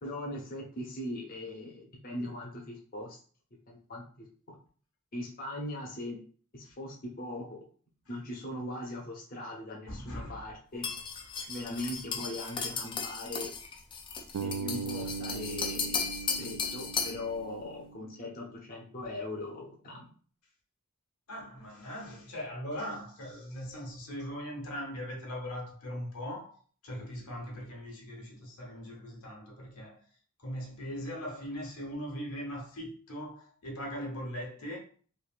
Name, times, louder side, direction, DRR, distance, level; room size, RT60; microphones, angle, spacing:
voice 1, 0.0-3.2 3.7-4.5 5.1-6.2 6.5-7.6 8.1-10.9 11.5-13.5 14.4-20.0, left 1 dB, 40° left, 0.7 m, -40 dB
voice 2, 9.9-10.4 21.3-26.6 26.8-30.0 30.4-34.8, equal, 90° left, 1.0 m, -40 dB
sound 1, 10.8-17.3, left 5 dB, 20° left, 0.3 m, -35 dB
Bass guitar, 14.3-18.4, right 5 dB, 80° right, 0.3 m, -39 dB
3.1 x 2.6 x 2.4 m
head